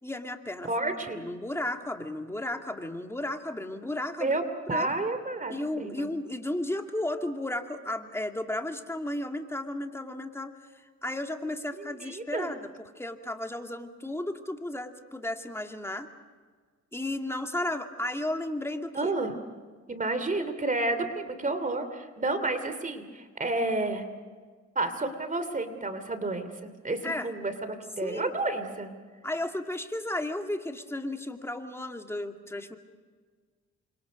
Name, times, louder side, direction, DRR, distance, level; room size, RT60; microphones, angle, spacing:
voice 1, 0.0-0.7 1.1-4.4 4.7-4.9 5.5-12.7 13.0-16.1 16.9-19.1 27.0-27.3 28.0-28.3 29.2-32.8, left 1 dB, 10° left, 4 dB, 2.4 m, -34 dB
voice 2, 0.6-1.2 4.2-4.4 4.7-6.1 11.8-12.5 18.9-19.3 19.9-24.0 24.7-28.9, right 2 dB, 25° right, 10 dB, 2.8 m, -30 dB
29.0 x 25.5 x 5.3 m, 1.5 s
cardioid pair, 90°, 30 cm